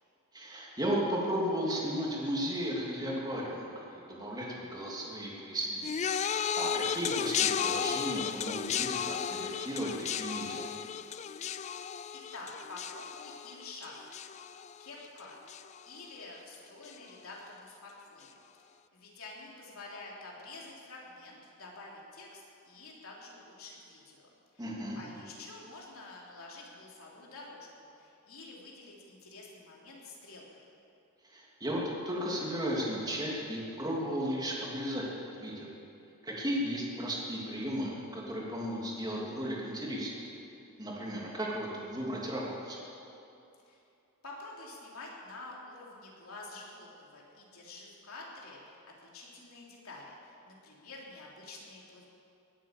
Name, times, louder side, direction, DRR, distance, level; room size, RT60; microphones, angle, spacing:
voice 1, 0.3-6.0 6.6-10.6 24.6-25.0 31.2-35.1 35.4-35.7 36.2-40.2 40.8-42.8, equal, 20° right, -4 dB, 2.9 m, -35 dB
sound 1, 5.8-15.2 15.5-16.0 16.9-17.0, left 8 dB, 30° left, 0.3 m, -34 dB
voice 2, 12.3-14.0 14.8-15.4 15.8-18.3 18.9-24.3 24.5-30.7 43.6-43.8 44.2-52.1, left 2 dB, 70° left, -3 dB, 3.4 m, -48 dB
19.0 x 8.9 x 7.5 m, 2.7 s
head